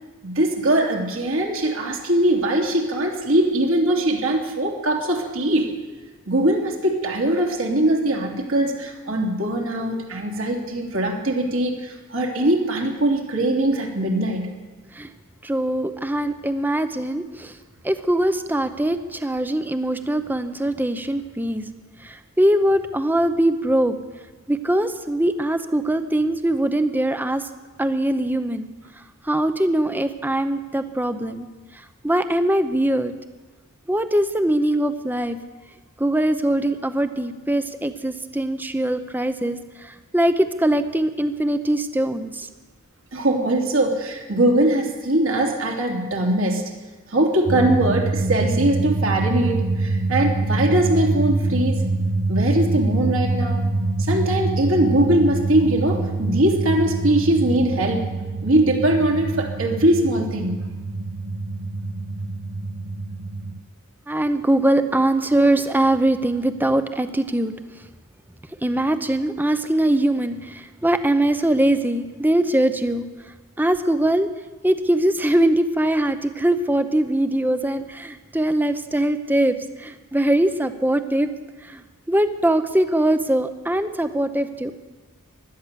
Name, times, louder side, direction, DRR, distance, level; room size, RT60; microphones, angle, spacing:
voice 1, 0.2-5.7 6.3-14.5 43.1-46.7 47.1-51.8 52.3-53.6 54.0-58.1 58.4-60.6, right 1 dB, 65° right, 0 dB, 3.0 m, -21 dB
voice 2, 15.4-17.6 17.8-21.6 22.0-23.9 24.5-27.5 27.8-28.7 29.2-31.5 32.0-33.1 33.9-35.4 36.0-42.5 64.1-67.5 68.6-73.1 73.6-74.3 74.6-81.3 81.6-84.7, right 1 dB, 10° right, 10 dB, 0.7 m, -22 dB
sound 1, 47.5-63.6, right 2 dB, 50° right, 0.8 m, -25 dB
17.0 x 12.0 x 6.9 m, 1.3 s
head